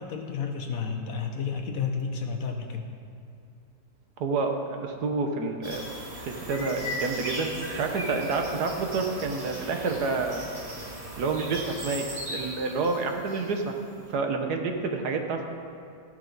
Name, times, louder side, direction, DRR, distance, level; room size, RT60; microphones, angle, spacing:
voice 1, 0.0-2.9, left 5 dB, 60° left, 4 dB, 1.1 m, -31 dB
voice 2, 4.2-5.9 6.5-10.4 11.2-13.7 14.1-15.5, right 4 dB, 65° right, 4 dB, 1.5 m, -29 dB
sound 1, 5.6-13.9, equal, 20° right, 1.8 m, -37 dB
13.5 x 11.0 x 4.0 m, 2.4 s
omnidirectional pair, 1.9 m